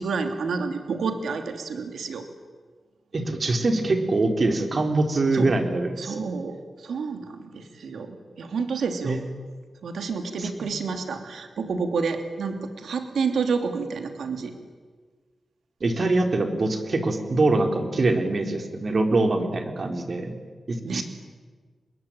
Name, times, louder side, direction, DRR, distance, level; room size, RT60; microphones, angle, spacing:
voice 1, 0.0-2.2 5.3-5.5 6.0-9.2 9.8-14.5 20.8-21.0, right 5 dB, 85° right, 6 dB, 2.8 m, -29 dB
voice 2, 3.1-6.2 9.0-9.2 10.4-10.7 15.8-20.3 20.7-21.0, right 2 dB, 50° right, 5 dB, 4.0 m, -24 dB
26.0 x 21.0 x 9.1 m, 1.5 s
cardioid pair, 85°, 0 cm